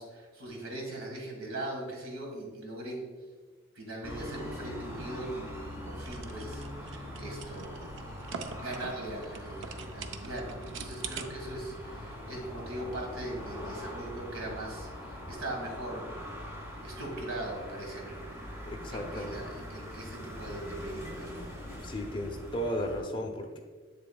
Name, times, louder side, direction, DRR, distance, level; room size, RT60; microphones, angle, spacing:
voice 1, 0.0-3.0 3.7-5.5 5.8-7.9 8.6-16.2 16.8-18.5 18.9-21.4, right 1 dB, 80° right, 0 dB, 1.7 m, -40 dB
sound 1, 4.0-23.0, left 1 dB, 15° right, 1.2 m, -43 dB
sound 2, 6.0-11.2, right 6 dB, 60° right, 0.5 m, -44 dB
voice 2, 18.7-19.4 21.8-23.6, equal, 25° left, 1 dB, 0.7 m, -35 dB
7.5 x 7.1 x 2.3 m, 1.4 s
head